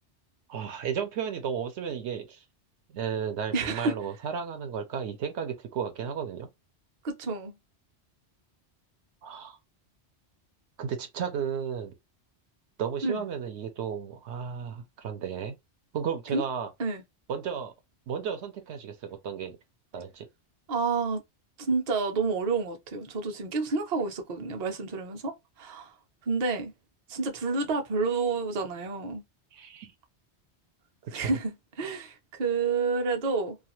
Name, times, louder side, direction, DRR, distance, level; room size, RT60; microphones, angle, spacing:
voice 1, 0.5-2.4 2.9-6.5 9.2-9.6 10.8-11.9 12.8-15.6 15.9-16.7 17.3-17.7 18.1-19.6 19.9-20.3 29.5-29.9 31.0-31.3, right 7 dB, 80° right, 0.9 m, -33 dB
voice 2, 3.5-3.9 7.0-7.6 13.0-13.2 16.3-16.4 16.8-17.0 20.7-21.2 21.6-25.9 26.3-26.7 27.1-29.2 31.1-33.6, right 4 dB, 45° right, 0.6 m, -29 dB
2.4 x 2.3 x 3.0 m
omnidirectional pair, 1.2 m